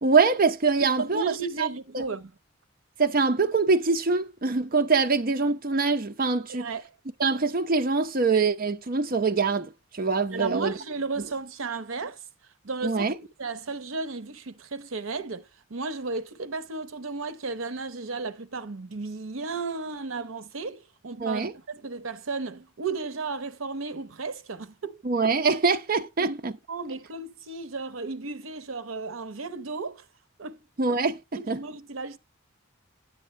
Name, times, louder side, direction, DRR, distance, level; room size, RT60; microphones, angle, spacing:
voice 1, 0.0-1.3 1.6-1.7 1.9-2.0 3.0-6.7 7.2-10.7 12.8-13.2 21.2-21.5 25.0-26.5 30.8-31.6, right 4 dB, 45° right, 0.7 m, -24 dB
voice 2, 1.0-2.3 6.5-6.8 10.3-12.2 12.6-13.1 13.4-25.0 26.2-26.4 26.7-30.0 30.4-30.6 31.3-32.2, right 4 dB, 80° right, 0.8 m, -34 dB
10.0 x 8.6 x 3.1 m
head